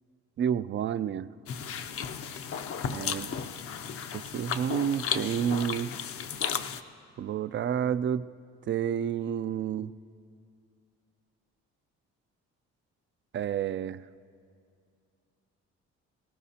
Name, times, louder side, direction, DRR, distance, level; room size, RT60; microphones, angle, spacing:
voice 1, 0.4-1.3 2.9-3.3 4.1-5.9 7.2-8.3 8.7-9.9 13.3-14.0, right 9 dB, 40° right, 15 dB, 0.4 m, -29 dB
sound 1, 1.5-6.8, left 7 dB, 50° left, 0.6 m, -34 dB
20.0 x 17.5 x 2.8 m, 2.3 s
cardioid pair, 90°, 30 cm